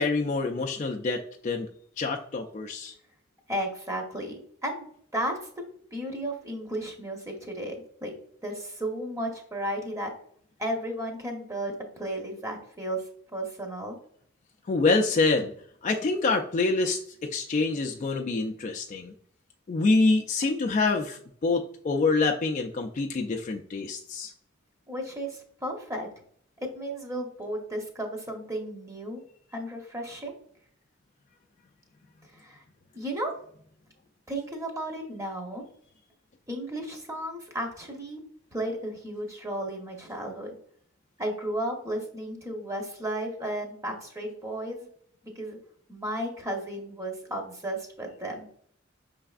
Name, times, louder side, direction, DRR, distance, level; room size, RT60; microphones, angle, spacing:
voice 1, 0.0-1.7 2.0-2.9 14.7-15.5 15.8-19.1 19.7-24.3, left 3 dB, 35° left, 3 dB, 0.3 m, -26 dB
voice 2, 3.5-5.4 5.9-8.1 8.4-10.1 10.6-13.0 13.3-14.0 24.9-26.1 26.6-29.2 29.5-30.3 32.3-32.6 32.9-33.4 34.3-35.6 36.5-38.2 38.5-40.6 41.2-44.9 45.2-45.6 45.9-48.5, right 1 dB, 15° right, 2 dB, 0.8 m, -34 dB
5.7 x 3.3 x 2.4 m, 0.62 s
head